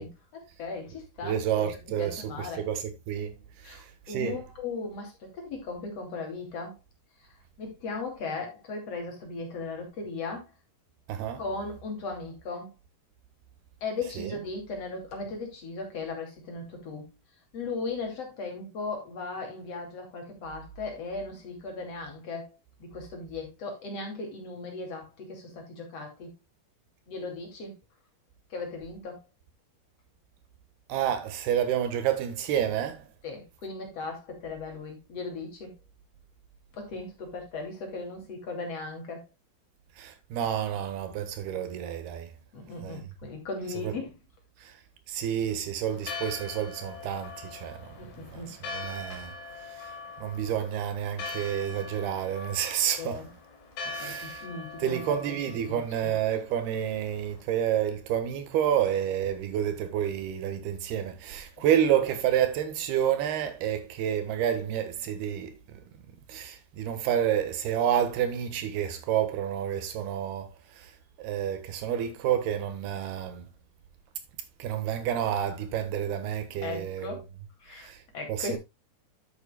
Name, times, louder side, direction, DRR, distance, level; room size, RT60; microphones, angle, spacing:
voice 1, 0.0-2.7 3.6-6.8 7.6-10.5 11.4-12.7 13.8-17.1 17.5-22.5 22.8-26.3 27.1-27.8 28.5-29.2 33.2-35.8 36.7-39.3 42.5-44.2 48.0-48.5 53.0-53.3 53.8-56.1 61.6-61.8 76.6-77.3 77.6-78.6, left 3 dB, 40° left, 3.4 m, -37 dB
voice 2, 1.2-3.3 3.7-4.4 11.1-11.5 14.0-14.4 30.9-33.0 40.0-42.3 42.8-43.0 43.7-44.0 44.6-44.7 45.1-49.4 49.8-49.9 50.2-53.3 53.9-54.4 54.8-65.8 66.3-70.5 70.8-70.9 71.2-73.5 74.6-77.2 77.8-78.0 78.3-78.6, right 10 dB, 75° right, 3.4 m, -29 dB
Church bell, 45.9-57.4, left 3 dB, 70° left, 4.3 m, -42 dB
11.0 x 8.1 x 2.3 m
omnidirectional pair, 4.6 m